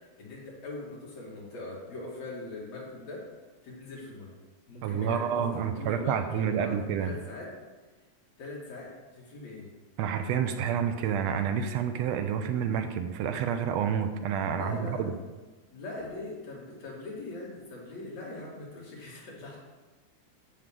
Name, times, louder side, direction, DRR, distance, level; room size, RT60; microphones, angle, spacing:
voice 1, 0.0-3.2 3.6-4.3 4.7-7.5 8.4-9.7 14.5-15.1 15.7-19.6, left 2 dB, 65° left, -5 dB, 3.6 m, -41 dB
voice 2, 4.8-7.2 10.0-15.1, right 8 dB, 75° right, 7 dB, 1.7 m, -29 dB
14.0 x 6.4 x 3.7 m, 1.3 s
omnidirectional pair, 3.3 m